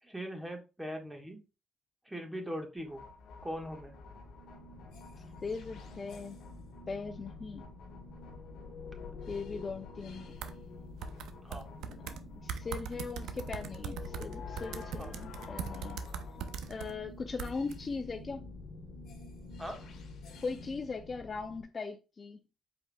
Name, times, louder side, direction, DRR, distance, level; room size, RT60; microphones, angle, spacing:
voice 1, 0.0-1.4 2.0-3.0 3.4-3.9 11.4-11.7 15.0-15.2 19.6-19.8, equal, 10° right, 1.5 m, -40 dB
sound 1, 2.8-21.6, left 3 dB, 75° left, 1.3 m, -47 dB
voice 2, 5.4-6.4 6.9-7.7 9.3-10.4 11.8-16.0 16.7-18.5 20.4-22.4, left 4 dB, 35° left, 0.5 m, -39 dB
sound 2, 10.4-10.5 11.0-12.2 12.5-16.9 17.4-17.7, right 7 dB, 85° right, 0.5 m, -40 dB
5.2 x 4.5 x 2.3 m
cardioid pair, 90°, 0 cm